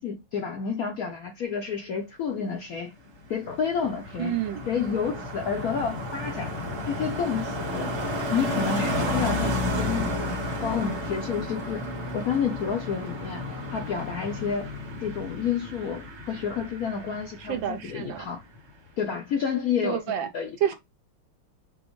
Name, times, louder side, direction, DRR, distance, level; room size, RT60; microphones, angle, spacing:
voice 1, 0.0-2.9 3.3-4.4 4.7-6.5 6.9-7.9 8.3-10.3 10.6-13.4 13.7-14.7 15.0-18.4 19.0-20.7, left 6 dB, 70° left, 0.8 m, -30 dB
Car passing by, 3.1-17.9 18.1-18.4, left 1 dB, 40° right, 1.2 m, -32 dB
voice 2, 4.2-4.6 17.4-18.3 19.8-20.3 20.6-20.7, right 9 dB, 70° right, 1.3 m, -28 dB
6.1 x 2.1 x 2.9 m
omnidirectional pair, 2.3 m